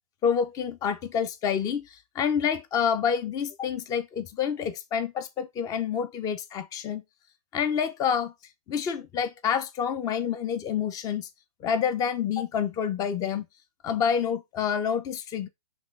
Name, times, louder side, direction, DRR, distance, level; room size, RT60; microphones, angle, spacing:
voice 1, 0.2-7.0 7.5-8.3 8.7-11.3 11.6-13.5 13.8-15.5, left 7 dB, 20° left, 0.7 m, -28 dB
6.2 x 3.4 x 5.4 m
hypercardioid pair, 135°, 19 cm